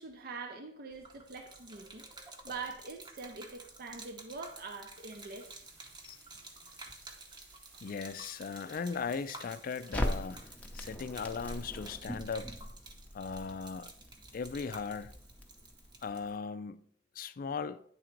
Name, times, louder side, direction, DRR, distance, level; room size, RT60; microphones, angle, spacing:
voice 1, 0.0-5.7, right 4 dB, 55° right, 0.6 m, -44 dB
Gurgling / Liquid, 0.9-16.4, right 2 dB, 25° right, 0.8 m, -52 dB
sound 1, 5.0-10.0, right 3 dB, 85° right, 1.7 m, -61 dB
voice 2, 7.8-10.4 10.7-12.5 13.1-13.9 14.3-15.2 16.0-16.9 17.1-17.8, left 5 dB, 50° left, 0.4 m, -38 dB
Crackle, 9.9-16.1, equal, 10° left, 0.7 m, -40 dB
9.2 x 3.8 x 4.5 m
head